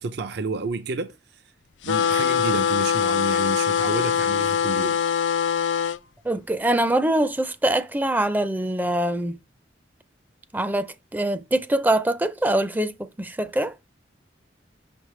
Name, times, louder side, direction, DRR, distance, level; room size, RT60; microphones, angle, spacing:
voice 1, 0.0-1.4 1.8-5.0, right 3 dB, 65° right, 0.5 m, -30 dB
sound 1, 1.8-6.0, left 7 dB, 90° left, 0.4 m, -22 dB
voice 2, 6.2-9.4 10.5-13.9, right 1 dB, 10° right, 0.4 m, -24 dB
5.8 x 5.1 x 3.2 m
head